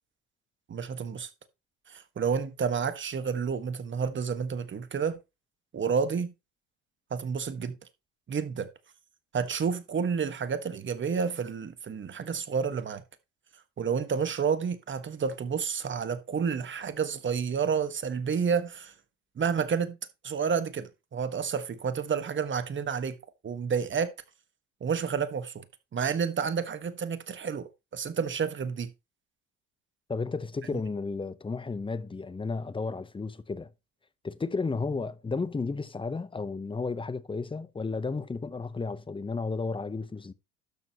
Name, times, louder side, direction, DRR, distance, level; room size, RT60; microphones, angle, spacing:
voice 1, 0.7-1.3 1.9-5.2 5.7-6.3 7.1-7.8 8.3-8.7 9.3-13.0 13.8-18.9 19.4-20.0 20.2-23.2 23.4-24.1 24.8-25.6 25.9-28.9, right 6 dB, 30° right, 1.5 m, -30 dB
voice 2, 30.1-33.7 34.2-40.3, left 4 dB, 15° left, 0.8 m, -33 dB
12.0 x 6.8 x 2.9 m
hypercardioid pair, 75°, 38 cm